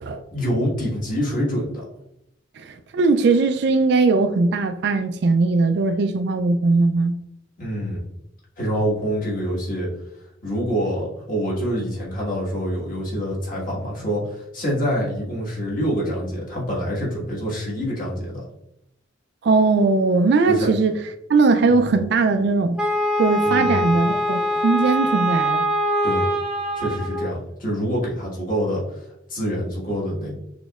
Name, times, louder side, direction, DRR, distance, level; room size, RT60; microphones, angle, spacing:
voice 1, 0.3-1.8 7.6-8.0 8.6-9.9 10.4-18.5 20.5-20.7 21.7-21.8 23.4-23.9 26.0-26.3 26.7-29.0 29.3-30.3, equal, 45° left, 1.6 m, -26 dB
voice 2, 2.6-7.2 19.4-21.0 21.3-22.8 23.2-25.6, right 3 dB, 60° right, 0.3 m, -19 dB
Wind instrument woodwind instrument, 22.8-27.3, equal, 5° right, 0.5 m, -23 dB
6.1 x 3.0 x 2.4 m
head